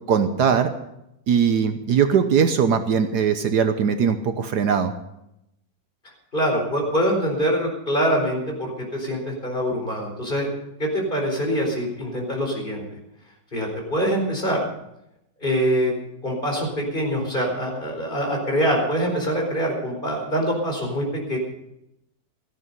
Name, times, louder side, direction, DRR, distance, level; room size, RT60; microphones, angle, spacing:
voice 1, 0.1-0.7 1.3-4.9, right 7 dB, 65° right, 8 dB, 1.4 m, -20 dB
voice 2, 6.3-10.5 10.8-12.8 13.5-14.6 15.4-15.9 16.2-21.4, equal, 25° left, 1 dB, 4.6 m, -24 dB
16.5 x 14.0 x 5.5 m, 0.83 s
omnidirectional pair, 1.9 m